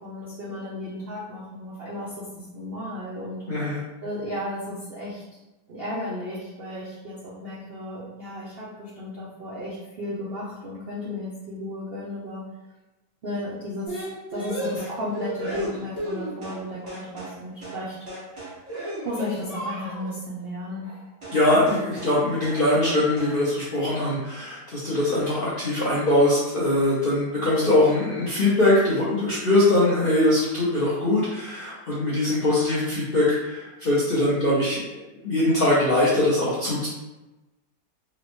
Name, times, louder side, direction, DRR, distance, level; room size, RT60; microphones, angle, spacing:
voice 1, 0.0-3.4 4.0-5.2 5.7-12.4 13.2-13.9 14.3-18.0 18.2-18.5 19.0-21.1, left 1 dB, 65° right, -7 dB, 0.6 m, -34 dB
voice 2, 3.5-3.8 21.3-36.9, left 1 dB, 55° left, -8 dB, 0.6 m, -22 dB
sound 1, 13.9-16.6 16.9-17.4 17.6-17.8 18.1-20.2 21.2-21.4 21.7-22.2 22.4-22.6 22.9-23.4, equal, 25° right, 1.0 m, -34 dB
4.0 x 2.1 x 3.0 m, 1.0 s
omnidirectional pair, 1.8 m